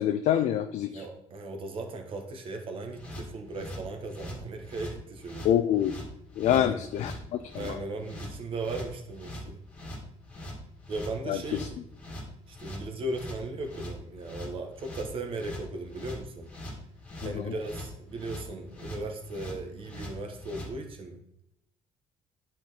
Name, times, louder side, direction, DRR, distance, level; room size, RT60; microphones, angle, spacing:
voice 1, 0.0-1.0 5.4-6.0 6.4-7.1 7.5-7.8 11.3-11.7 17.2-17.5, left 10 dB, 60° left, 8 dB, 0.4 m, -26 dB
voice 2, 0.9-5.5 6.4-6.8 7.6-9.6 10.9-11.8 12.5-16.5 17.2-21.2, right 2 dB, 45° right, 5 dB, 1.3 m, -37 dB
sound 1, 2.9-20.7, left 1 dB, 10° left, 2.1 m, -42 dB
10.5 x 4.4 x 4.1 m, 0.79 s
cardioid pair, 170°, 13 cm